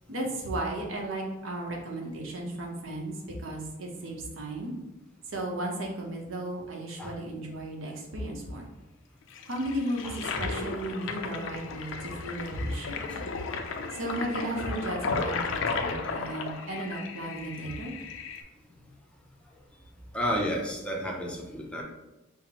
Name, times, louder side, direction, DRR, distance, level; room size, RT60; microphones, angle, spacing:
voice 1, 0.1-4.7 5.3-8.7 9.5-13.3 13.9-17.9, right 1 dB, 70° right, 0 dB, 0.8 m, -35 dB
Toilet flush, 9.3-18.4, left 4 dB, 70° left, 0.4 m, -34 dB
voice 2, 20.1-21.8, equal, 5° left, -2 dB, 0.5 m, -31 dB
5.6 x 2.0 x 2.8 m, 1.0 s
head